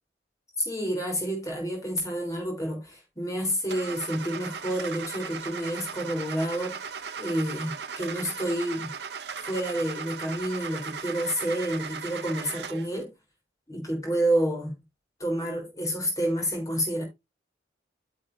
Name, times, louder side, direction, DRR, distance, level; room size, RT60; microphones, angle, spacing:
voice 1, 0.6-6.8 7.2-9.0 9.5-13.1 13.7-14.8 15.2-17.0, right 1 dB, 20° left, 3.6 m, -29 dB
Car / Engine starting, 3.7-13.0, right 6 dB, 60° right, 0.7 m, -37 dB
9.1 x 7.4 x 2.6 m
head